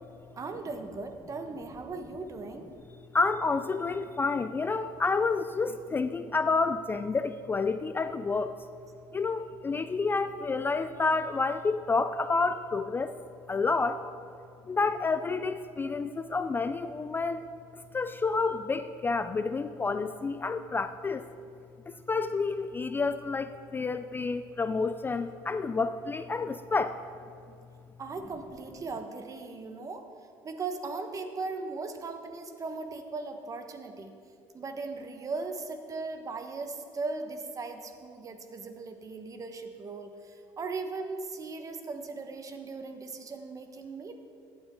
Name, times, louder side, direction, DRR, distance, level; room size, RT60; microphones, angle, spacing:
voice 1, 0.4-2.7 28.0-30.1 30.4-34.1 34.5-44.2, right 3 dB, 35° right, 6 dB, 1.2 m, -38 dB
voice 2, 3.1-8.5 9.1-13.2 13.5-14.0 14.7-17.4 17.9-21.3 22.1-27.0, left 4 dB, 20° left, 11 dB, 0.4 m, -29 dB
15.0 x 8.9 x 3.8 m, 2.4 s
supercardioid pair, 90°, 10 cm